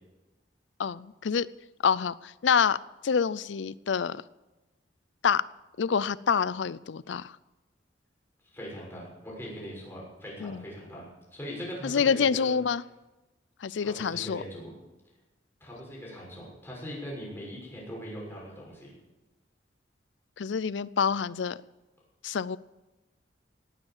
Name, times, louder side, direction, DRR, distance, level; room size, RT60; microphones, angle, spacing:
voice 1, 0.8-1.5 1.8-4.2 5.2-5.4 5.8-7.3 10.4-10.6 11.8-12.8 13.6-14.4 20.4-21.6 22.2-22.6, left 6 dB, 85° left, 0.5 m, -27 dB
voice 2, 8.4-12.5 13.8-14.7 15.6-18.9, equal, 15° left, 6.3 m, -41 dB
18.5 x 8.9 x 7.3 m
head